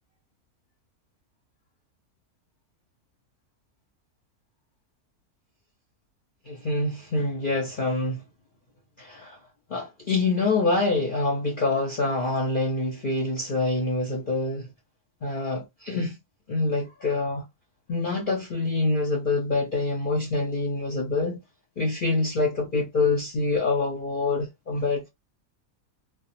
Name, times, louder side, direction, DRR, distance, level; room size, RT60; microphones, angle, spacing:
voice 1, 6.5-8.2 9.0-9.4 9.7-14.7 15.2-16.2 16.5-17.4 17.9-21.4 21.8-25.1, left 3 dB, 45° left, 0.7 m, -26 dB
2.3 x 2.2 x 2.9 m
omnidirectional pair, 1.6 m